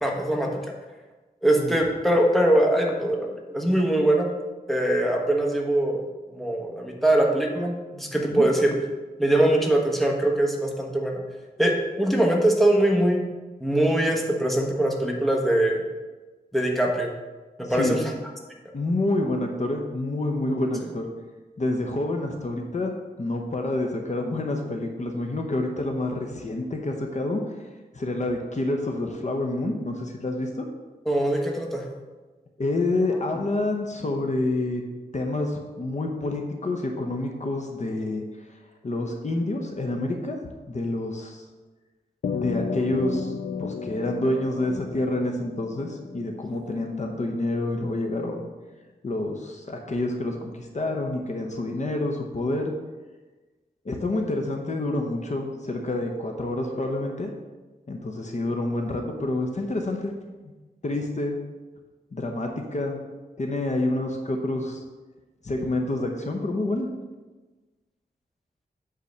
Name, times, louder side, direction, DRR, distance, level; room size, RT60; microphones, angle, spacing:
voice 1, 0.0-0.5 1.4-4.3 4.7-6.0 6.3-8.7 9.2-11.2 11.6-13.2 13.6-15.8 16.5-17.1 17.6-18.0 20.8-20.9 31.1-31.8, right 1 dB, ahead, 0 dB, 1.2 m, -22 dB
voice 2, 17.6-18.0 18.7-21.1 21.6-22.9 23.2-27.4 27.9-30.7 32.6-34.8 35.1-38.2 38.8-40.4 40.7-41.5 42.3-43.3 43.6-48.5 49.0-52.7 53.8-57.3 57.9-60.1 60.8-61.4 62.1-63.0 63.4-64.8 65.4-66.9, left 2 dB, 45° left, 2 dB, 0.9 m, -28 dB
sound 1, 42.2-46.9, left 6 dB, 75° left, 0.4 m, -33 dB
8.4 x 3.8 x 6.6 m, 1.2 s
wide cardioid pair, 110°, 17 cm